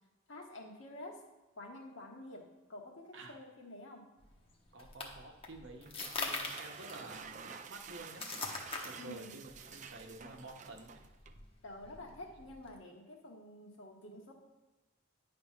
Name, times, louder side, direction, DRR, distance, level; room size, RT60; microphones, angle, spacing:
voice 1, 0.3-1.2 1.5-2.4 2.7-4.0 8.9-9.4 11.6-14.3, left 1 dB, 65° left, 0 dB, 1.4 m, -49 dB
sound 1, 4.2-12.8, left 3 dB, 25° left, 0.9 m, -44 dB
voice 2, 4.7-8.3 8.8-11.0 12.0-12.1, right 2 dB, 60° right, 3 dB, 0.9 m, -51 dB
sound 2, 5.8-11.4, right 6 dB, 35° right, 0.4 m, -50 dB
9.3 x 3.4 x 5.8 m, 1.1 s
head